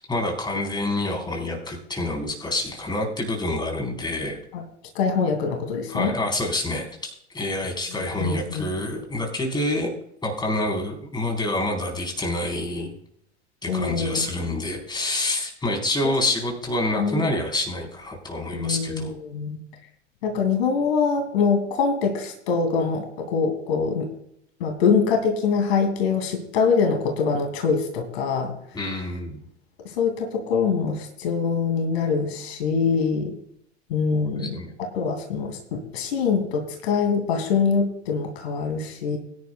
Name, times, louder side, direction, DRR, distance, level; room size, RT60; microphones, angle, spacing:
voice 1, 0.1-4.4 5.9-9.9 10.2-12.9 13.6-19.2 28.7-29.4 34.1-34.7, left 1 dB, 10° left, 0 dB, 4.2 m, -27 dB
voice 2, 4.9-6.1 7.9-8.7 13.7-14.2 16.0-16.1 17.0-17.2 18.5-19.6 20.2-24.1 24.6-28.5 29.8-33.4 33.9-34.6 34.9-39.2, left 5 dB, 60° left, 3 dB, 2.6 m, -24 dB
22.5 x 11.0 x 2.3 m, 0.73 s
figure-of-eight pair, 85°, 34 cm